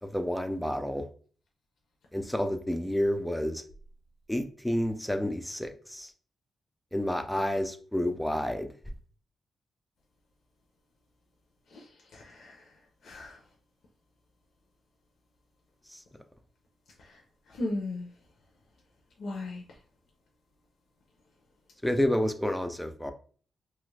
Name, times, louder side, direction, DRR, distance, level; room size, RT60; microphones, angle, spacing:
voice 1, 0.0-1.0 2.1-3.6 4.3-6.1 6.9-8.7 15.9-16.0 21.8-23.1, left 1 dB, 5° left, 0.3 m, -29 dB
voice 2, 12.1-12.6 13.0-13.4 17.0-17.2 17.5-18.1 19.2-19.6, left 2 dB, 65° left, 0.6 m, -36 dB
2.9 x 2.4 x 3.2 m
wide cardioid pair, 170°, 0 cm